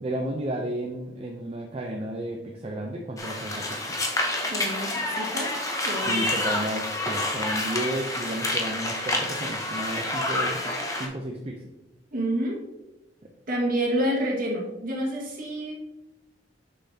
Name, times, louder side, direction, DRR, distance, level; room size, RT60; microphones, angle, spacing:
voice 1, 0.0-3.8 6.0-10.6 11.0-11.6, right 1 dB, 30° right, 1 dB, 0.5 m, -32 dB
sound 1, 3.2-11.1, left 1 dB, 20° left, 0.8 m, -28 dB
voice 2, 4.5-5.6 5.8-6.3 12.1-12.6 13.5-15.8, right 1 dB, 50° right, -2 dB, 1.7 m, -28 dB
6.8 x 5.6 x 2.8 m, 1.0 s
head